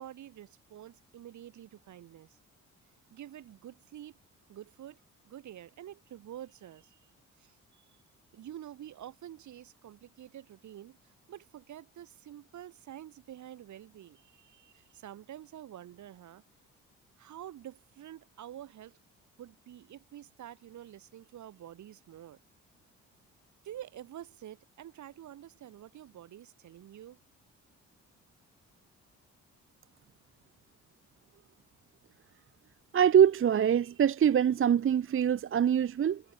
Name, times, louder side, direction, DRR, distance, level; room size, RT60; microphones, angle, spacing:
voice 1, 0.0-2.4 3.1-4.2 4.5-5.0 5.3-7.1 7.4-8.0 8.3-16.4 17.2-19.0 19.4-22.4 23.6-27.2, right 11 dB, 70° right, 3.5 m, -48 dB
voice 2, 32.9-36.2, right 9 dB, 45° right, 0.9 m, -24 dB
cardioid pair, 90°, 30 cm